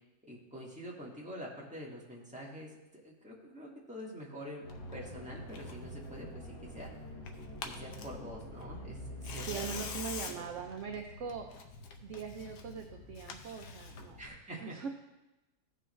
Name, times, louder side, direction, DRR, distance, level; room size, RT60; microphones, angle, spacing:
voice 1, 0.3-2.7 3.0-4.7 4.9-6.9 7.6-9.0 9.3-9.8 10.3-10.4 14.2-14.8, equal, 5° right, -4 dB, 1.5 m, -46 dB
sound 1, 4.6-10.2, equal, 70° left, 2.0 m, -46 dB
Tearing, 4.7-14.3, left 5 dB, 85° left, 1.4 m, -47 dB
voice 2, 9.5-11.5 12.0-14.2 14.6-14.9, right 6 dB, 60° right, 3 dB, 0.8 m, -41 dB
15.0 x 5.4 x 3.2 m, 0.99 s
omnidirectional pair, 1.8 m